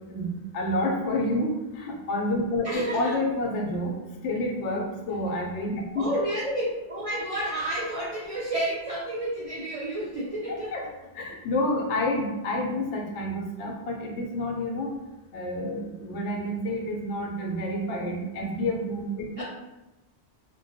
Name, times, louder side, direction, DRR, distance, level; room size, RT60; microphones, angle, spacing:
voice 1, 0.1-3.9 4.2-6.1 10.7-10.8 11.2-14.9 15.3-19.4, left 1 dB, 80° left, 0 dB, 0.9 m, -29 dB
voice 2, 2.6-3.2 6.0-10.7 19.4-19.5, right 1 dB, 65° right, -6 dB, 0.3 m, -30 dB
2.2 x 2.2 x 2.6 m, 1.0 s
omnidirectional pair, 1.2 m